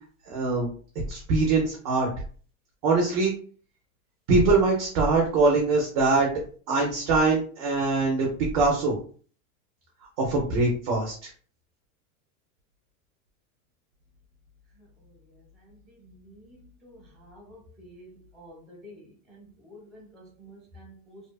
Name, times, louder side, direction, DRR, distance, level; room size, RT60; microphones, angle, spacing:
voice 1, 0.3-0.7 1.1-2.1 2.8-3.3 4.3-6.3 6.7-8.3 8.5-8.9 10.2-11.1, right 3 dB, 30° right, 0.4 m, -22 dB
voice 2, 18.4-19.0 19.7-21.2, equal, ahead, 0.8 m, -48 dB
2.6 x 2.1 x 2.3 m
supercardioid pair, 160°, 41 cm